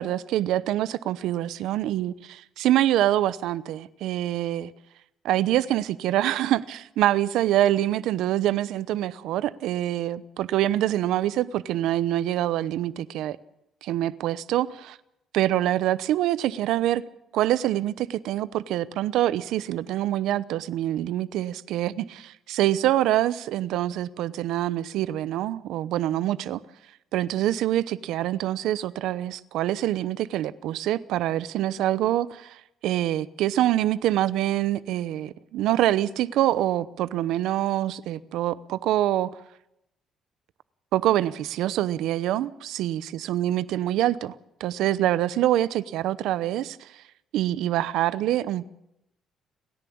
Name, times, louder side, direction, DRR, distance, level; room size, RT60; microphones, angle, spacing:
voice 1, 0.0-4.7 5.2-13.4 13.8-15.0 15.3-17.0 17.3-26.6 27.1-39.3 40.9-42.5 42.8-43.0 43.3-46.9 47.3-48.7, right 13 dB, 85° right, 0.8 m, -25 dB
30.0 x 11.0 x 8.7 m
cardioid pair, 100°, 0 cm